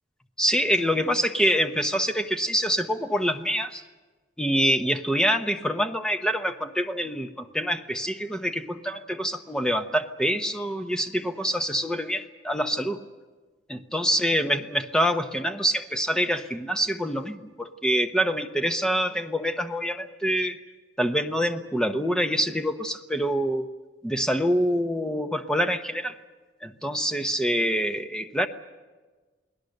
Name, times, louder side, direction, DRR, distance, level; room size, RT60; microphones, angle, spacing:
voice 1, 0.4-3.8 4.4-13.0 13.7-20.6 21.0-23.7 24.0-26.2 26.6-28.5, equal, 5° left, 7 dB, 1.0 m, -26 dB
29.0 x 19.5 x 6.7 m, 1.3 s
head